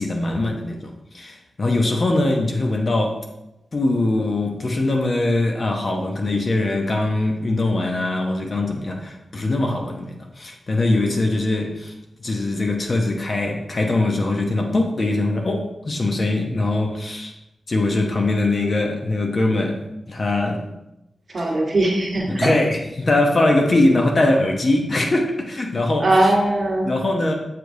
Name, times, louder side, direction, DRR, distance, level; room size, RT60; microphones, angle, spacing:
voice 1, 0.0-3.2 3.7-11.9 12.2-17.3 17.7-20.6 21.4-21.6 22.3-26.3 26.8-27.3, left 2 dB, 40° left, 2 dB, 0.8 m, -22 dB
voice 2, 21.3-22.5 26.0-26.9, right 1 dB, 40° right, -3 dB, 1.5 m, -20 dB
7.7 x 4.8 x 2.7 m, 0.90 s
wide cardioid pair, 140°, 0 cm